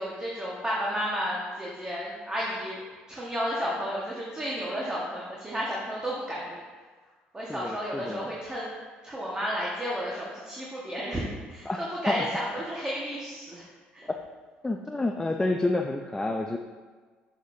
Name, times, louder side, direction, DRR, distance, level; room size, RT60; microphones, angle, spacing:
voice 1, 0.0-2.8 3.1-6.6 7.3-8.7 9.0-13.7 13.9-14.1, equal, 20° right, -5 dB, 1.5 m, -32 dB
voice 2, 7.5-8.3 11.7-11.8 12.1-12.2 14.6-16.6, left 2 dB, 15° left, 3 dB, 0.5 m, -29 dB
7.4 x 6.7 x 2.7 m, 1.4 s
supercardioid pair, 70°, 4 cm